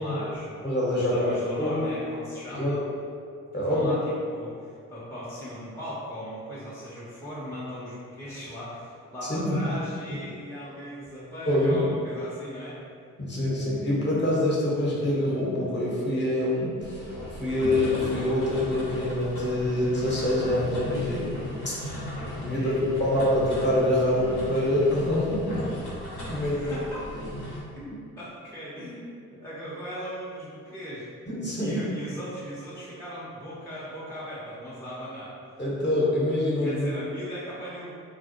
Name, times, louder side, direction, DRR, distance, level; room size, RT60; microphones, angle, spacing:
voice 1, 0.0-0.5 0.9-2.8 3.6-4.0 4.3-12.8 22.5-23.2 26.3-27.0 27.8-31.1 31.6-35.3 36.6-38.0, equal, 5° left, -10 dB, 0.7 m, -38 dB
voice 2, 0.6-1.3 1.6-1.9 2.5-2.8 3.5-3.9 9.3-9.6 11.5-11.8 13.2-21.3 21.6-21.7 22.4-25.6 26.2-26.8 31.3-31.8 35.6-36.9, left 1 dB, 30° left, -6 dB, 0.9 m, -25 dB
sound 1, 16.8-27.6, left 1 dB, 75° left, 0.8 m, -37 dB
2.3 x 2.0 x 2.8 m, 2.4 s
hypercardioid pair, 40°, 37 cm